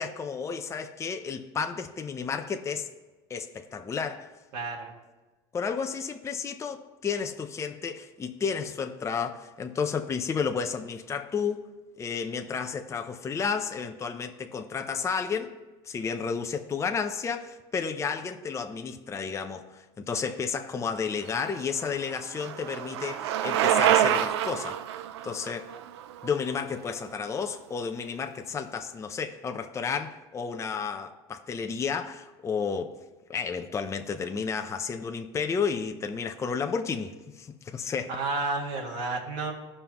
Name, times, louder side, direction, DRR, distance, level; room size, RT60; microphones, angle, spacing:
voice 1, 0.0-2.9 3.3-4.3 5.5-11.7 12.0-15.5 15.8-24.8 25.2-25.7 26.2-33.0 33.3-38.2, left 6 dB, 20° left, 0.6 m, -32 dB
voice 2, 4.5-4.9 38.1-39.5, right 3 dB, 65° right, 1.8 m, -31 dB
Bicycle, 21.3-27.2, right 11 dB, 90° right, 0.4 m, -27 dB
16.0 x 5.5 x 3.0 m
supercardioid pair, 105°, 14 cm